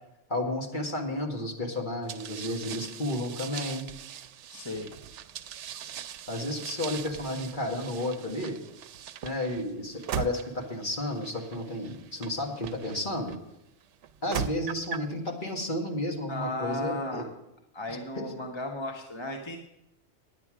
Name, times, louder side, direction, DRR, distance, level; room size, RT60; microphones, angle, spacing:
voice 1, 0.3-3.9 6.3-8.6 9.2-13.4 14.2-17.2 18.2-18.3, left 1 dB, 45° left, 0 dB, 1.9 m, -32 dB
sound 1, 2.1-13.4 14.0-15.1, right 8 dB, 80° right, 0.9 m, -40 dB
voice 2, 4.5-4.9 16.3-17.3 17.7-19.6, left 1 dB, 25° left, 2 dB, 1.0 m, -35 dB
9.8 x 9.4 x 6.2 m, 0.86 s
omnidirectional pair, 1.2 m